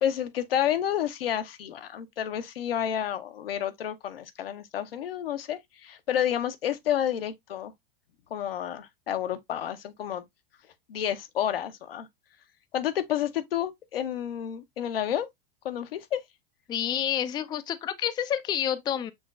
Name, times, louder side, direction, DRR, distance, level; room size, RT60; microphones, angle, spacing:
voice 1, 0.0-7.7 8.3-10.2 10.9-12.1 12.7-15.3 15.6-16.2, left 10 dB, 75° left, 0.7 m, -30 dB
voice 2, 16.7-19.1, left 10 dB, 15° left, 0.3 m, -29 dB
6.3 x 2.9 x 2.3 m
hypercardioid pair, 90°, 29 cm